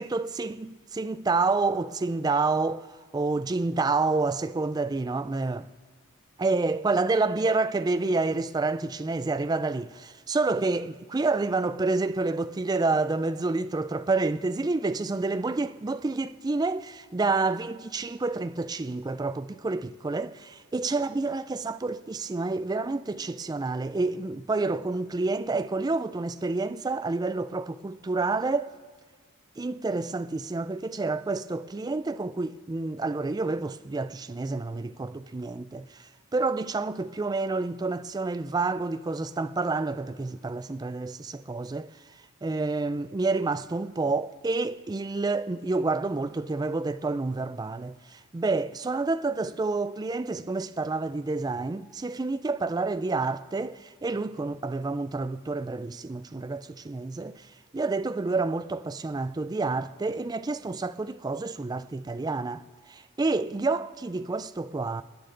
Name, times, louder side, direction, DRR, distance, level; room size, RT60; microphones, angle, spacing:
voice 1, 0.0-2.9 3.1-5.7 6.4-28.7 29.6-41.9 42.4-57.5 57.7-62.6 62.9-65.0, right 3 dB, 20° right, 0.3 m, -29 dB
26.5 x 9.6 x 3.8 m
head